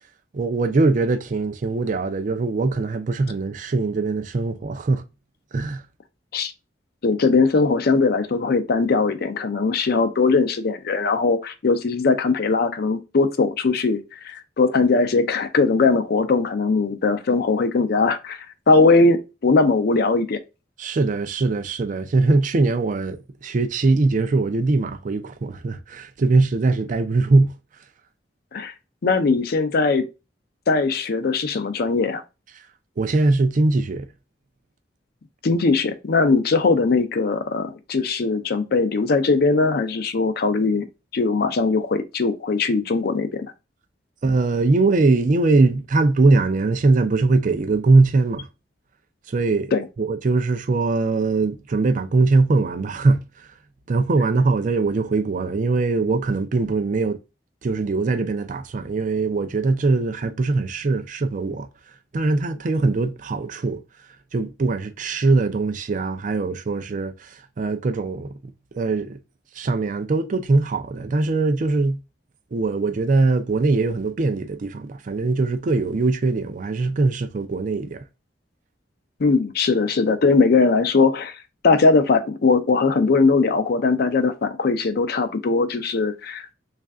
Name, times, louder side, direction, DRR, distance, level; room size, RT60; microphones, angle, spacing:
voice 1, 0.3-5.0 5.5-5.8 20.8-27.5 33.0-34.1 44.2-48.5 49.3-49.7 50.0-53.2 53.9-57.2 57.6-61.7 62.1-63.8 64.3-69.2 69.6-72.0 72.5-78.0, right 3 dB, 45° right, 0.4 m, -21 dB
voice 2, 7.0-20.4 28.5-28.7 29.0-30.1 30.7-32.2 35.4-40.9 41.1-43.5 49.7-49.8 79.2-81.4 81.6-86.5, left 4 dB, 60° left, 0.5 m, -20 dB
3.2 x 2.5 x 3.5 m
head